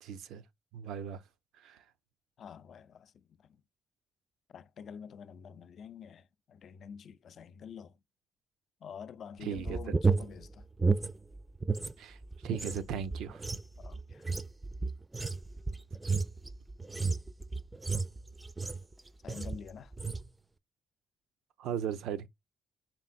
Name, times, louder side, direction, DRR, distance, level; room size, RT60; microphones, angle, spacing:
voice 1, 0.0-0.4 0.7-1.2 1.5-1.8 9.4-9.8 12.0-13.4 21.6-22.3, right 8 dB, 85° right, 0.5 m, -37 dB
voice 2, 2.4-3.6 4.5-8.0 8.8-10.6 13.8-14.3 19.2-19.9, left 7 dB, 60° left, 0.3 m, -48 dB
sound 1, 9.5-11.9 12.2-18.9 19.3-19.6 19.9-20.3, right 4 dB, 15° right, 0.3 m, -32 dB
4.3 x 3.6 x 2.4 m
cardioid pair, 90°, 0 cm